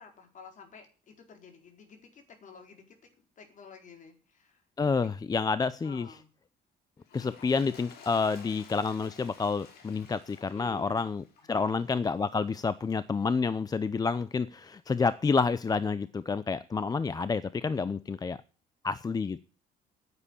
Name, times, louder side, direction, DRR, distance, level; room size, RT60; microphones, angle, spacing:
voice 1, 0.0-5.1 5.8-6.3 10.5-11.7, left 6 dB, 50° left, 4 dB, 4.5 m, -52 dB
voice 2, 4.8-6.1 7.1-18.4 18.8-19.4, left 4 dB, 20° left, 16 dB, 0.6 m, -29 dB
Toilet flush, 7.0-12.5 13.2-13.3, left 6 dB, 70° left, 4.5 m, -53 dB
10.0 x 9.7 x 9.9 m, 0.39 s
cardioid pair, 110°, 17 cm